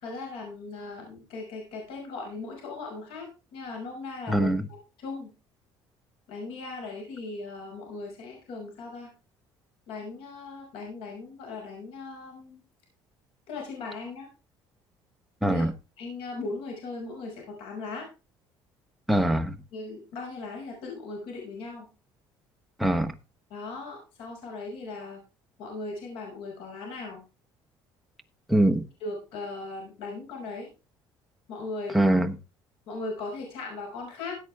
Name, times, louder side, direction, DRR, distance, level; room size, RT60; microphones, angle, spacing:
voice 1, 0.0-4.5 5.0-5.3 6.3-9.1 9.9-12.6 13.5-14.3 15.4-15.7 16.0-18.1 19.7-21.9 23.5-25.2 25.6-27.2 29.0-30.7 31.5-32.0 32.9-34.4, left 3 dB, 80° left, 6.1 m, -38 dB
voice 2, 4.3-4.7 15.4-15.7 19.1-19.6 22.8-23.1 28.5-28.8 31.9-32.4, right 1 dB, ahead, 1.0 m, -23 dB
16.0 x 8.2 x 3.5 m
cardioid pair, 135°, 9 cm